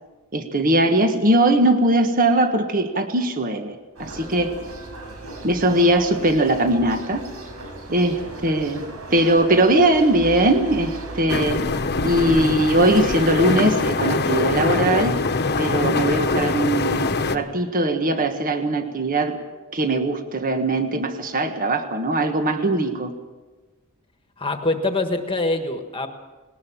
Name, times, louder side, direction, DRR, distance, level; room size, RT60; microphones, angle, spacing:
voice 1, 0.3-4.5 5.4-7.2 7.9-11.6 12.0-15.2 15.6-19.4 19.7-23.1, right 1 dB, 40° right, 6 dB, 1.6 m, -20 dB
sound 1, 4.0-11.3, right 1 dB, 85° right, 4.9 m, -36 dB
sound 2, 11.3-17.4, left 3 dB, 50° left, 1.2 m, -23 dB
voice 2, 24.4-26.1, left 2 dB, 25° left, 6 dB, 1.5 m, -24 dB
20.0 x 19.0 x 7.3 m, 1.3 s
head